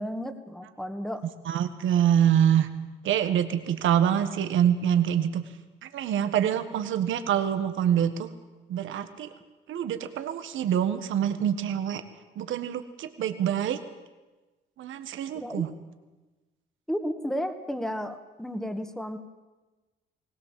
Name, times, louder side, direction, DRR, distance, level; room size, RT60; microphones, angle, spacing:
voice 1, 0.0-1.3 15.3-15.6 16.9-19.2, equal, ahead, 8 dB, 1.8 m, -33 dB
voice 2, 1.4-2.7 3.0-5.4 5.8-8.3 8.7-9.3 9.7-12.0 12.3-13.8 14.8-15.7, right 9 dB, 80° right, 9 dB, 1.5 m, -25 dB
21.0 x 18.0 x 7.6 m, 1.2 s
cardioid pair, 90°, 20 cm